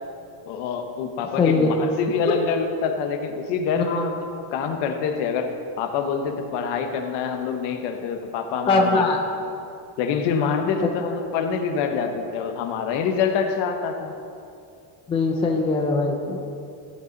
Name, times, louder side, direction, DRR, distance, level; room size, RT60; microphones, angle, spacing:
voice 1, 0.5-9.1 10.0-14.1, left 6 dB, 65° left, 5 dB, 1.2 m, -26 dB
voice 2, 1.4-1.8 3.8-4.0 8.7-9.2 15.1-16.4, left 3 dB, 15° left, 2 dB, 0.4 m, -21 dB
15.0 x 8.0 x 4.0 m, 2.6 s
cardioid pair, 170°, 45 cm